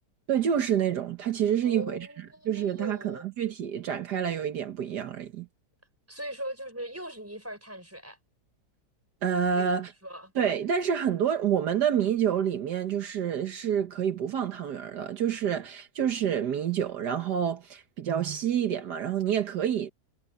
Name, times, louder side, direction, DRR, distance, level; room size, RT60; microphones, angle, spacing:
voice 1, 0.3-2.1 2.5-5.5 9.2-9.9 10.4-19.9, right 8 dB, 75° right, 1.8 m, -28 dB
voice 2, 1.6-3.3 6.1-8.2 9.6-9.7 10.0-10.3, right 1 dB, 10° right, 6.1 m, -40 dB
omnidirectional pair, 1.8 m